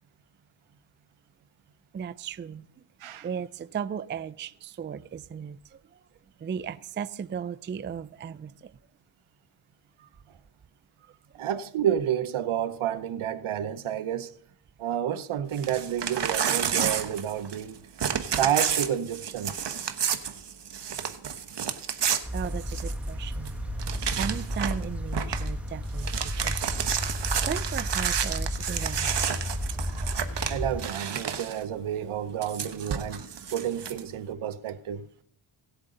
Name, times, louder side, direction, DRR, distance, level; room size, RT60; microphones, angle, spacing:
voice 1, 1.9-2.8 3.2-6.0 6.4-8.7 22.3-23.6 24.0-26.9 27.5-29.2, right 7 dB, 25° right, 0.4 m, -36 dB
voice 2, 11.3-14.4 14.8-17.8 18.4-19.5 30.5-33.2 33.5-35.0, right 10 dB, 70° right, 0.9 m, -30 dB
Crumpling crinkling / Tearing, 15.5-17.7 18.0-23.1 23.4-23.5 23.8-24.8 25.1-25.5 25.8-31.6 32.4-34.0, right 8 dB, 55° right, 1.1 m, -30 dB
sound 1, 22.2-30.8, equal, 5° right, 1.5 m, -32 dB
17.5 x 8.0 x 3.8 m
cardioid pair, 70°, 50 cm